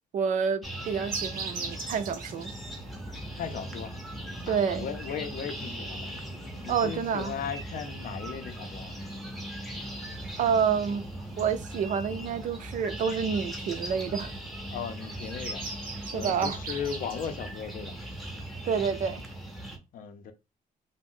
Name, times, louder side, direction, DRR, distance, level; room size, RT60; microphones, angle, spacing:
voice 1, 0.1-2.5 4.5-4.9 6.7-7.3 10.4-11.0 11.4-14.3 16.0-16.6 18.7-19.2, right 6 dB, 55° right, 0.4 m, -28 dB
sound 1, 0.6-19.8, right 1 dB, ahead, 0.5 m, -39 dB
sound 2, 1.1-18.9, right 5 dB, 75° right, 0.7 m, -43 dB
voice 2, 3.3-3.9 4.4-6.1 6.6-8.9 14.7-18.0 19.9-20.3, left 7 dB, 70° left, 0.5 m, -37 dB
2.4 x 2.1 x 3.5 m
cardioid pair, 150°, 15 cm